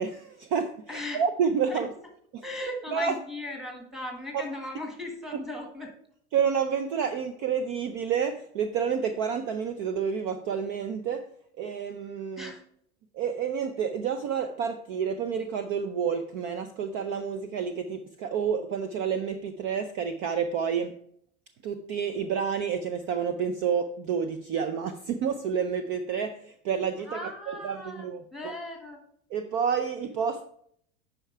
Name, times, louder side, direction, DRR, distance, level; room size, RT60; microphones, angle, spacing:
voice 1, 0.0-0.9 1.1-1.9 2.3-2.4 2.9-3.1 6.3-11.3 11.6-12.5 13.1-21.0 21.6-27.1 27.5-27.8 28.0-28.5 29.3-30.4, right 7 dB, 40° right, 9 dB, 0.5 m, -29 dB
voice 2, 0.9-1.2 1.7-1.9 2.4-5.9 12.4-12.6 27.0-29.0, left 1 dB, ahead, 1 dB, 1.4 m, -37 dB
8.9 x 5.6 x 4.8 m, 0.65 s
supercardioid pair, 170°, 32 cm